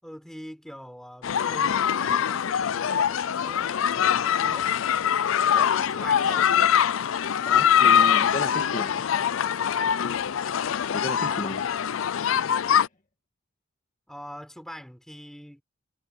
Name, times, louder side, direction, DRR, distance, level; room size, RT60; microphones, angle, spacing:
voice 1, 0.0-4.8 5.4-6.6 11.2-11.6 14.1-15.6, equal, ahead, 4.1 m, -43 dB
sound 1, 1.2-12.9, left 8 dB, 75° left, 0.5 m, -23 dB
voice 2, 7.5-9.0 9.5-9.7 10.9-11.6 12.7-12.8, left 1 dB, 40° left, 2.0 m, -34 dB
head